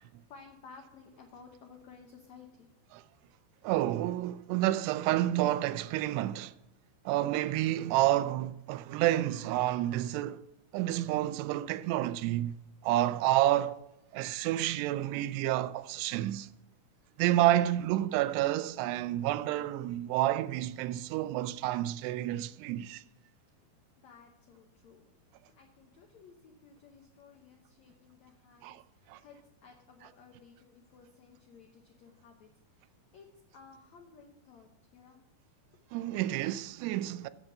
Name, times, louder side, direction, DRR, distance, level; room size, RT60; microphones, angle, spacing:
voice 1, 0.0-2.7 24.0-35.2, left 5 dB, 90° left, 1.5 m, -56 dB
voice 2, 3.6-6.5 7.1-10.4 10.7-12.6 12.8-13.8 14.1-16.5 17.2-23.0 28.6-28.8 29.1-29.2 35.9-37.3, right 14 dB, 90° right, 2.6 m, -29 dB
8.1 x 7.3 x 6.6 m
omnidirectional pair, 4.7 m